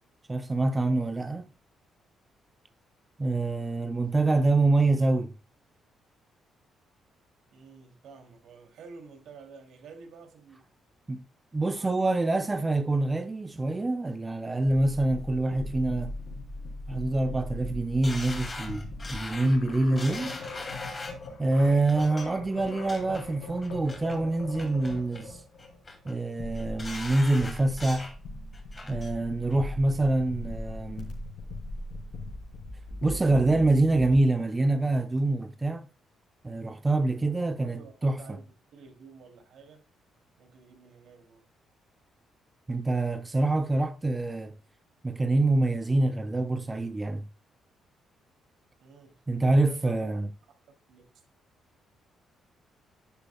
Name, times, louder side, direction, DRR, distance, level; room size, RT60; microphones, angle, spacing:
voice 1, 0.3-1.5 3.2-5.3 11.1-11.2 11.5-16.1 16.9-20.3 21.4-25.4 26.0-28.1 28.9-31.1 33.0-35.9 36.4-38.4 42.7-44.5 45.0-47.3 49.3-50.3, right 2 dB, 20° right, 0.6 m, -26 dB
voice 2, 7.5-10.6 11.5-12.4 37.2-38.4 38.7-39.8 40.4-41.5 48.8-50.3 50.9-51.0, right 5 dB, 75° right, 2.7 m, -50 dB
sound 1, 14.6-34.2, left 2 dB, 75° left, 4.0 m, -40 dB
sound 2, 18.0-21.3 21.9-22.2 22.7-23.2 23.6-24.2 24.6-25.3 25.6-26.1 26.5-28.2 28.5-29.1 29.5-29.6, left 3 dB, 30° left, 2.6 m, -41 dB
11.0 x 7.8 x 2.3 m
cardioid pair, 90°, 0 cm